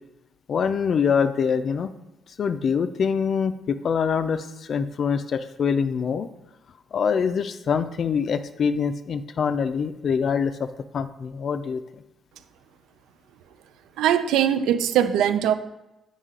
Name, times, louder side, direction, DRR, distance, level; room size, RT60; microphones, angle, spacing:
voice 1, 0.5-1.9 2.4-6.3 6.9-11.8, left 6 dB, 55° left, 0.4 m, -24 dB
voice 2, 14.0-15.5, right 10 dB, 90° right, 0.4 m, -21 dB
8.1 x 5.3 x 3.8 m
cardioid pair, 90°, 0 cm